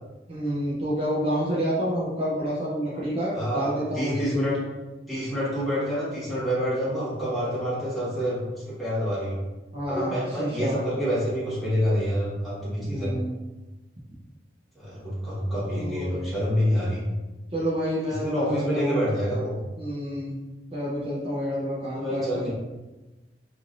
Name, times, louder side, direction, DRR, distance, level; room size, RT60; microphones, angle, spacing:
voice 1, 0.3-4.4 9.7-10.8 12.8-13.3 15.5-16.3 17.5-19.1 19.8-20.4 20.7-22.5, equal, 35° right, -8 dB, 0.5 m, -29 dB
voice 2, 3.3-4.6 5.1-9.4 9.9-13.1 14.7-17.1 18.2-19.6 21.9-22.5, equal, ahead, -10 dB, 1.2 m, -27 dB
3.1 x 2.5 x 2.5 m, 1.1 s
head